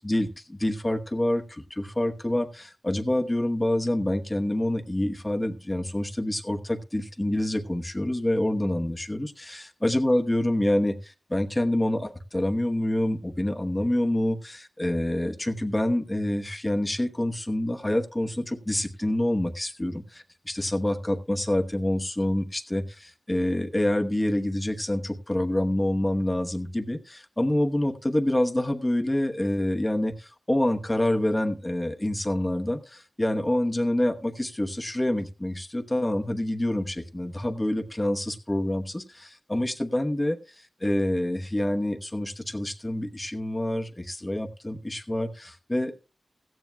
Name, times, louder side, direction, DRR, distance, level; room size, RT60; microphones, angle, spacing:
voice 1, 0.0-46.0, left 1 dB, 20° left, 1.0 m, -27 dB
16.5 x 14.5 x 2.3 m
wide cardioid pair, 85°, 0 cm